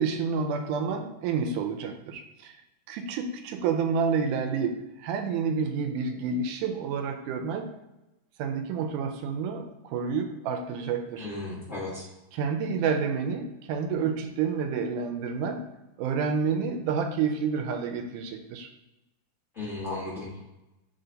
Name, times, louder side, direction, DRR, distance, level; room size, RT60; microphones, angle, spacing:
voice 1, 0.0-2.5 2.9-7.7 8.4-11.3 12.3-15.7 16.0-18.7, right 5 dB, 85° right, 6 dB, 2.1 m, -29 dB
voice 2, 11.2-12.1 19.5-20.4, left 2 dB, 75° left, -7 dB, 0.7 m, -35 dB
6.8 x 4.1 x 3.9 m, 0.99 s
omnidirectional pair, 3.7 m